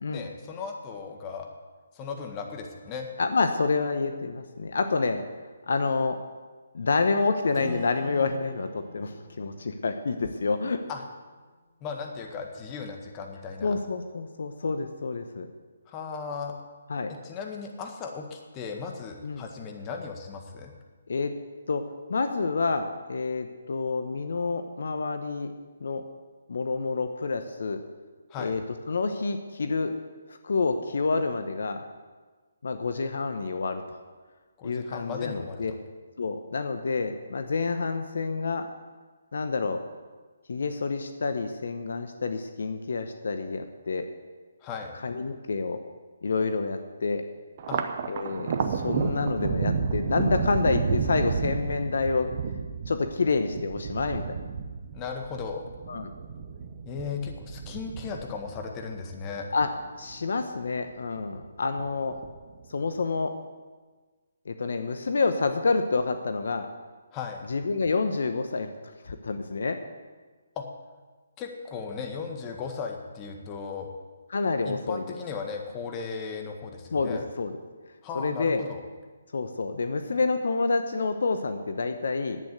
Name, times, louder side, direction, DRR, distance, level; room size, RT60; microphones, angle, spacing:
voice 1, 0.1-1.5 1.9-3.1 10.9-11.0 11.8-13.8 15.9-16.5 17.1-20.7 28.3-28.6 34.6-35.8 44.6-44.9 47.7-47.8 54.9-55.6 56.8-59.5 67.1-67.5 70.5-70.6 71.4-73.9 74.6-77.2 78.0-78.8, left 5 dB, 25° left, 3 dB, 1.7 m, -36 dB
voice 2, 3.2-5.2 5.7-6.2 6.7-10.8 13.6-15.5 16.9-17.1 19.2-19.4 21.1-21.3 21.7-21.8 22.1-25.5 25.8-26.0 26.5-27.8 28.4-28.6 28.9-29.9 30.4-31.8 32.6-34.0 34.6-35.7 36.2-38.7 39.3-39.8 40.5-44.1 45.0-45.8 46.2-47.2 48.1-52.3 52.9-54.2 55.9-56.1 59.5-59.7 60.0-62.1 62.7-63.3 64.5-66.7 67.5-68.7 69.0-69.8 74.3-75.0 76.9-77.5 78.1-78.6 79.3-82.4, left 4 dB, 65° left, 7 dB, 0.9 m, -28 dB
Acoustic guitar / Strum, 7.5-11.1, left 1 dB, ahead, 3.0 m, -43 dB
Thunder, 47.6-60.2 60.6-61.4 61.8-62.6, right 6 dB, 40° right, 0.9 m, -32 dB
11.0 x 8.8 x 8.1 m, 1.4 s
figure-of-eight pair, 145°, 0 cm